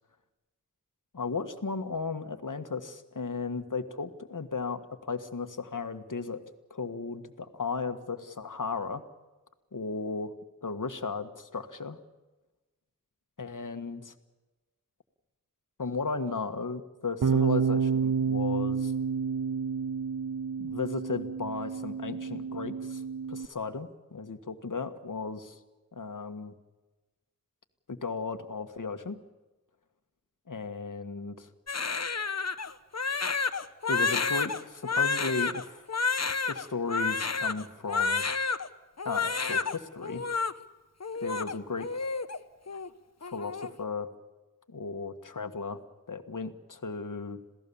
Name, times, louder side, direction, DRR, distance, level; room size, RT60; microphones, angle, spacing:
voice 1, 1.1-6.4 6.7-9.0 9.7-10.3 10.6-12.0 13.4-14.1 15.8-18.9 20.6-23.0 23.3-25.6 25.9-26.5 27.9-29.2 30.5-31.5 33.9-35.9 36.5-38.2 39.0-40.2 41.2-42.2 43.3-44.1 44.7-45.8 46.1-47.4, left 4 dB, 70° left, 8 dB, 1.6 m, -35 dB
Bass guitar, 17.2-23.5, right 6 dB, 75° right, 0.7 m, -29 dB
Crying sobbing, 31.7-38.7 39.0-39.8 40.0-40.5 41.0-42.4 42.7-42.9 43.2-43.7, left 4 dB, 55° left, 1.0 m, -30 dB
27.0 x 17.0 x 7.1 m, 1.2 s
wide cardioid pair, 50°, 32 cm